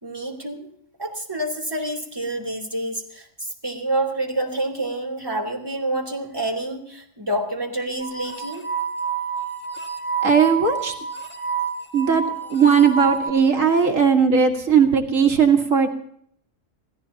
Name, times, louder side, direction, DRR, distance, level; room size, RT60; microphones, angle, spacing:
voice 1, 0.0-0.7 1.0-8.7, right 1 dB, 20° right, 1 dB, 3.3 m, -28 dB
sound 1, 8.0-13.3, right 6 dB, 10° left, 2.8 m, -28 dB
voice 2, 10.2-10.9 11.9-12.2 12.5-15.9, right 6 dB, 80° right, 3 dB, 2.1 m, -17 dB
28.0 x 17.0 x 2.8 m, 0.64 s
omnidirectional pair, 1.3 m